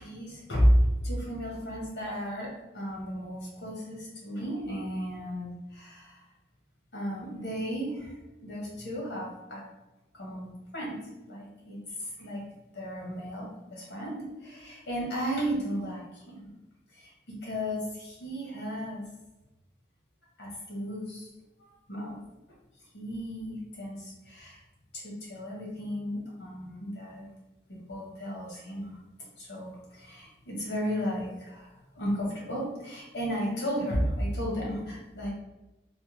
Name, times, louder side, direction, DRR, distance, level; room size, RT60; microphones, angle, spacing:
voice 1, 0.0-6.2 6.9-9.7 10.1-11.0 11.3-12.4 12.7-16.5 16.9-19.0 20.4-21.3 21.9-22.2 22.9-24.6 24.9-27.2 27.7-28.9 29.4-35.3, equal, 85° left, -3 dB, 1.0 m, -33 dB
3.1 x 2.2 x 2.9 m, 1.0 s
head